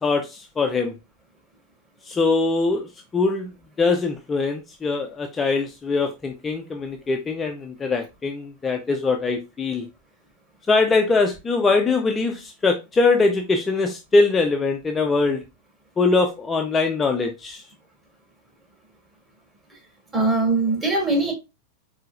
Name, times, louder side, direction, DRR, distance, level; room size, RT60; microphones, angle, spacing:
voice 1, 0.0-0.9 2.0-3.5 3.8-9.8 10.7-15.4 16.0-17.6, left 3 dB, 15° left, 0.5 m, -22 dB
voice 2, 20.1-21.3, right 3 dB, 20° right, 2.8 m, -21 dB
4.6 x 4.0 x 2.4 m
figure-of-eight pair, 90°, 0 cm